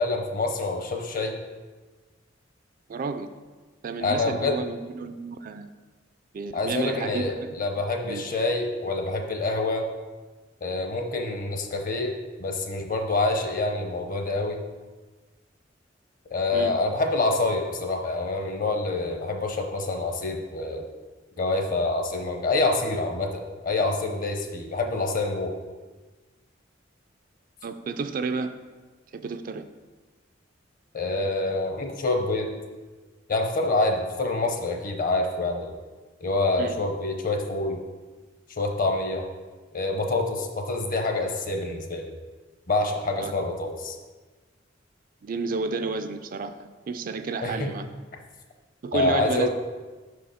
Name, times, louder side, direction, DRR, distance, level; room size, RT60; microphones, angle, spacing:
voice 1, 0.0-1.3 4.0-4.6 6.5-9.9 10.6-14.6 16.3-20.8 21.4-25.5 30.9-32.5 33.3-35.7 36.2-37.8 38.5-39.2 39.7-42.1 42.7-44.0 47.4-47.7 48.9-49.5, left 2 dB, 45° left, 4 dB, 0.8 m, -26 dB
voice 2, 2.9-3.3 3.8-5.7 6.3-7.6 8.0-8.3 16.5-16.7 27.6-28.5 29.1-29.7 36.6-36.8 43.2-43.3 45.2-47.9 48.8-49.5, right 4 dB, 50° right, 9 dB, 0.4 m, -31 dB
5.9 x 4.9 x 5.0 m, 1.3 s
head